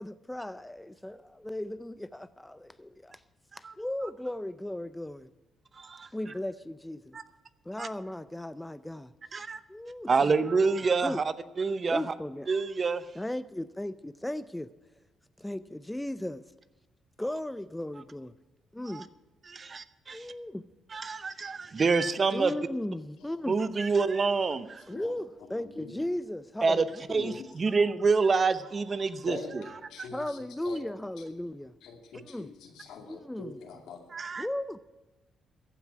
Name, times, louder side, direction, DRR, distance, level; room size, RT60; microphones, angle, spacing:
voice 1, 0.0-3.2 3.6-5.3 6.1-7.2 7.7-9.1 9.7-10.3 11.0-11.2 11.9-12.5 13.2-14.7 15.4-16.4 17.2-18.3 18.7-19.1 20.1-20.7 22.3-23.6 24.9-27.4 30.1-31.7 32.1-32.5 33.0-33.6 34.4-34.8, left 1 dB, 10° left, 0.5 m, -36 dB
voice 2, 5.8-6.1 7.1-7.2 7.8-7.9 9.3-9.6 10.1-12.1 12.5-13.0 18.9-19.0 19.4-20.3 20.9-22.5 23.5-24.8 26.6-29.7 30.0-30.1 34.1-34.5, right 4 dB, 40° right, 0.7 m, -27 dB
voice 3, 29.3-30.4 30.6-30.8 31.8-34.0, left 4 dB, 85° left, 2.3 m, -44 dB
15.0 x 6.1 x 9.4 m
cardioid pair, 90°, 0 cm